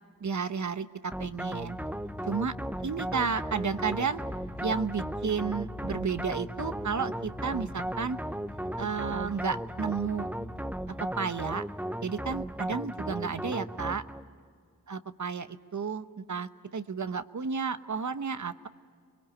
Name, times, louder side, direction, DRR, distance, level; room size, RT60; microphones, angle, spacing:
voice 1, 0.2-1.8 2.3-2.5 2.8-4.2 4.6-8.2 8.8-10.3 11.0-11.6 12.0-14.0 14.9-18.7, right 5 dB, 50° right, 12 dB, 1.0 m, -32 dB
sound 1, 1.1-14.3, right 1 dB, 5° right, 0.9 m, -36 dB
Bass guitar, 1.6-11.2, left 3 dB, 55° left, 5.4 m, -47 dB
25.5 x 22.0 x 9.8 m, 2.2 s
cardioid pair, 50°, 39 cm